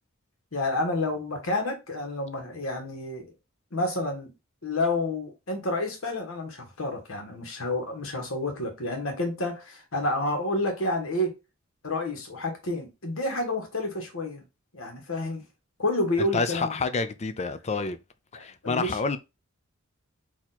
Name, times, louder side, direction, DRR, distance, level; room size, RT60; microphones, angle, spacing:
voice 1, 0.5-3.3 3.7-4.3 4.6-11.4 11.8-14.4 14.7-15.4 15.8-16.8 18.4-19.0, left 2 dB, 70° left, 1.5 m, -29 dB
voice 2, 16.2-18.0 18.3-19.2, left 4 dB, 30° left, 0.4 m, -28 dB
4.4 x 2.9 x 4.1 m
head